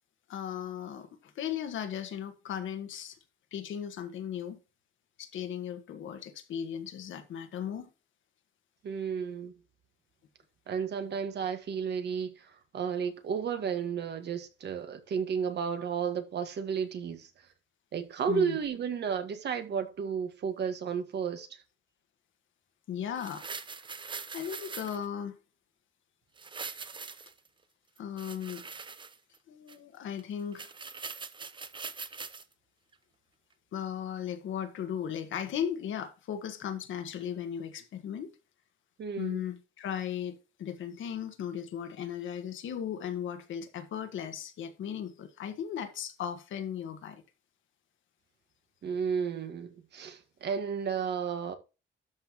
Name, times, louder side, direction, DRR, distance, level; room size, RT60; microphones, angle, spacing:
voice 1, 0.3-3.2 3.5-4.6 5.2-7.9 18.3-18.6 22.9-23.5 24.3-25.4 28.0-28.7 29.5-30.7 33.7-38.3 39.2-47.2, left 9 dB, 70° left, 1.6 m, -37 dB
voice 2, 8.8-9.5 10.7-17.3 17.9-21.6 39.0-39.4 48.8-51.5, right 7 dB, 55° right, 1.7 m, -33 dB
sound 1, 23.2-25.0 26.4-27.5 28.0-29.4 29.7-29.8 30.2-30.3 30.5-32.4 32.9-33.0, right 5 dB, 25° right, 0.8 m, -42 dB
12.5 x 5.7 x 3.0 m
cardioid pair, 140°, 21 cm